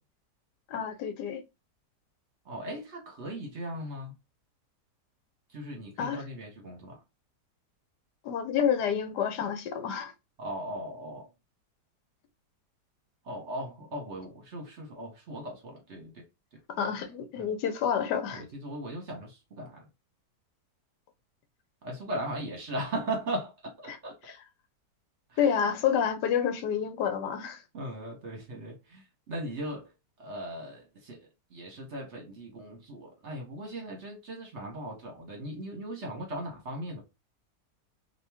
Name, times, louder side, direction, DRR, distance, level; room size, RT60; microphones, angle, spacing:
voice 1, 0.7-1.4 6.0-6.2 8.2-10.1 16.7-18.4 23.9-24.0 25.4-27.6, left 8 dB, 80° left, 1.2 m, -29 dB
voice 2, 2.4-4.1 5.5-7.0 10.4-11.3 13.2-16.2 17.4-17.5 18.3-19.9 21.8-24.2 25.3-25.7 27.4-27.5 27.7-29.9 30.2-37.0, right 1 dB, 50° right, 1.1 m, -38 dB
2.9 x 2.7 x 3.4 m
omnidirectional pair, 1.8 m